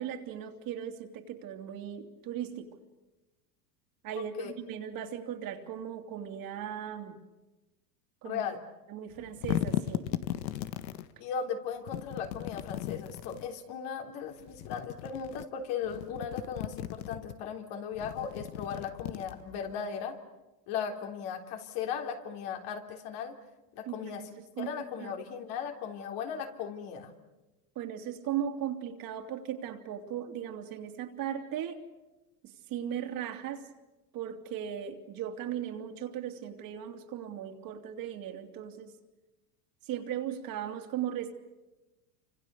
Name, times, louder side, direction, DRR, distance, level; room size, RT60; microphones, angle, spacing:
voice 1, 0.0-2.7 4.0-7.2 8.2-8.4 8.9-10.1 23.9-24.2 24.6-24.8 25.0-25.1 27.7-31.8 32.7-33.7 34.1-38.9 39.9-41.3, right 10 dB, 45° right, 5 dB, 3.0 m, -37 dB
voice 2, 4.1-4.5 8.2-8.6 11.2-20.2 20.7-23.4 23.7-24.3 24.6-27.1, left 7 dB, 55° left, 4 dB, 3.6 m, -37 dB
sound 1, 9.1-11.1 11.9-13.5 14.4-15.4 15.8-17.3 17.9-19.7, left 13 dB, 90° left, 1.5 m, -36 dB
29.0 x 26.0 x 6.9 m, 1.1 s
supercardioid pair, 125°, 49 cm